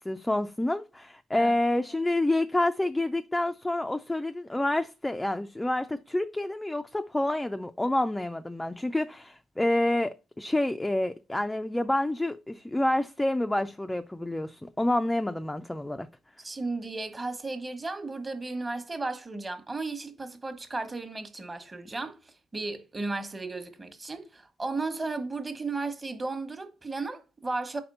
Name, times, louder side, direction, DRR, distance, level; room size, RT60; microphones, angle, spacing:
voice 1, 0.0-16.1, left 1 dB, 10° left, 0.4 m, -28 dB
voice 2, 16.4-27.8, right 3 dB, 25° right, 1.1 m, -34 dB
5.1 x 4.3 x 5.4 m
cardioid pair, 90°, 0 cm